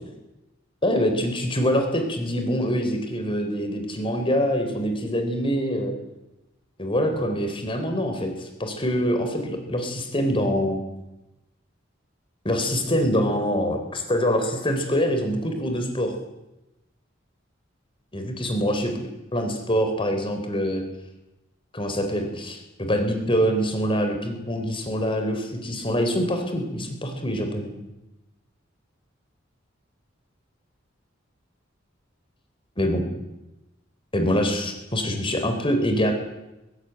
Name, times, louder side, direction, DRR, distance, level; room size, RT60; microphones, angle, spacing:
voice 1, 0.8-5.9 6.8-10.8 12.4-16.1 18.1-18.9 19.3-20.8 21.7-27.7 32.8-33.0 34.1-36.1, equal, 25° left, 6 dB, 3.8 m, -25 dB
23.0 x 16.0 x 9.1 m, 0.96 s
head